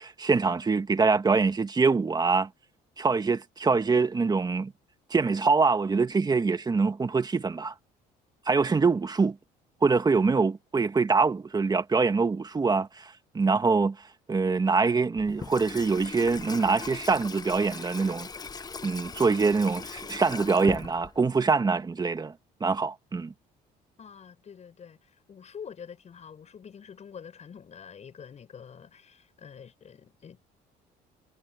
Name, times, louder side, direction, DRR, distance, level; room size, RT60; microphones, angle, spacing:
voice 1, 0.0-2.5 3.0-4.7 5.1-7.7 8.5-9.4 9.8-13.9 14.3-18.3 18.8-22.3 22.6-23.3, right 4 dB, 25° right, 1.6 m, -24 dB
Water tap faucet / Sink (filling or washing), 15.2-21.4, left 4 dB, 25° left, 1.0 m, -39 dB
voice 2, 24.0-30.5, left 7 dB, 40° left, 7.7 m, -46 dB
cardioid pair, 110°, 17 cm